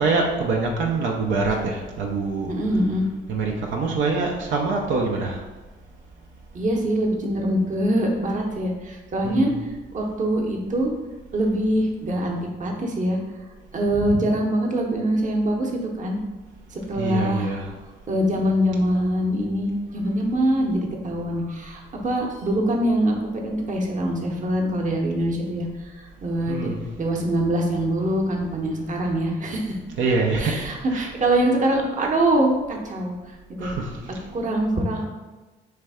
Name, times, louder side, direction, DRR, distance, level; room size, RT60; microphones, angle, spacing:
voice 1, 0.0-2.5 3.3-5.4 9.2-9.5 17.0-17.7 26.5-26.8 30.0-31.1 33.6-34.3, right 3 dB, 75° right, 0 dB, 0.7 m, -25 dB
voice 2, 2.5-3.1 6.5-10.9 11.3-13.2 13.7-16.2 16.7-17.6 18.1-26.7 27.0-29.8 30.4-33.7 34.3-35.0, right 1 dB, 40° right, 0 dB, 1.0 m, -24 dB
3.3 x 3.3 x 4.9 m, 1.2 s
cardioid pair, 90°, 20 cm